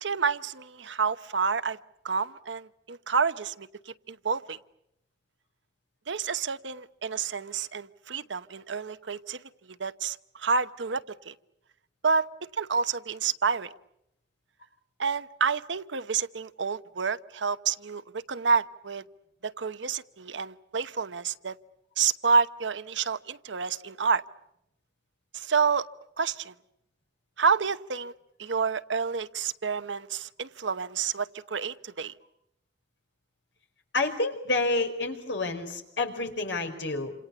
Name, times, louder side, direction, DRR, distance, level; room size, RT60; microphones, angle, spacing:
voice 1, 0.0-1.8 2.0-4.6 6.1-9.4 9.8-11.3 12.0-12.3 12.6-13.7 15.0-19.0 19.4-21.6 22.0-24.2 25.3-25.8 26.2-26.5 27.4-28.1 28.4-32.1, right 5 dB, 85° right, 12 dB, 1.0 m, -29 dB
voice 2, 33.9-37.1, left 2 dB, 80° left, 5 dB, 4.7 m, -29 dB
28.5 x 27.0 x 7.0 m, 0.82 s
head